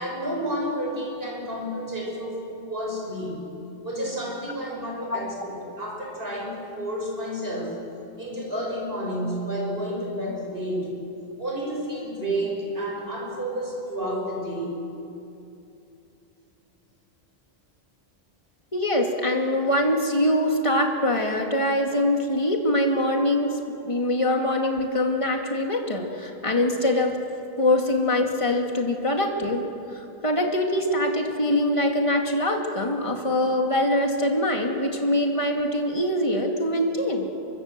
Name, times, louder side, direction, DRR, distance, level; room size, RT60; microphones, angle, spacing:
voice 1, 0.0-3.4 3.8-7.7 8.2-10.9 11.4-14.7, equal, 65° right, -1 dB, 6.4 m, -30 dB
voice 2, 18.7-23.6 23.8-27.1 27.6-29.6 29.9-37.3, left 1 dB, 30° left, 2 dB, 2.4 m, -23 dB
25.0 x 23.5 x 7.6 m, 2.8 s
omnidirectional pair, 1.0 m